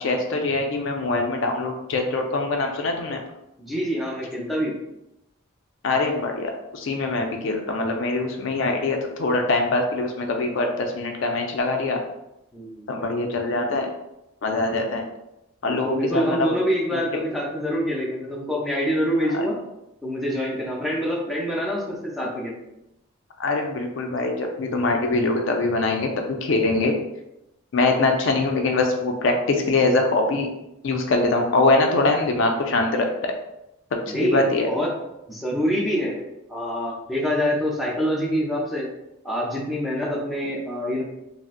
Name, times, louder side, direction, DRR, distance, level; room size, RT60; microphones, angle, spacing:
voice 1, 0.0-3.2 5.8-12.0 12.9-13.9 14.4-15.0 15.6-16.5 16.9-17.0 19.3-19.4 23.4-27.0 27.7-30.5 30.8-33.3 34.1-34.7, left 2 dB, 60° left, 3 dB, 0.4 m, -23 dB
voice 2, 3.6-4.8 12.5-12.9 15.7-19.6 20.0-22.6 34.1-34.9 35.3-36.2 36.5-38.9 39.2-41.0, equal, ahead, -4 dB, 0.5 m, -25 dB
3.7 x 2.0 x 2.4 m, 0.88 s
head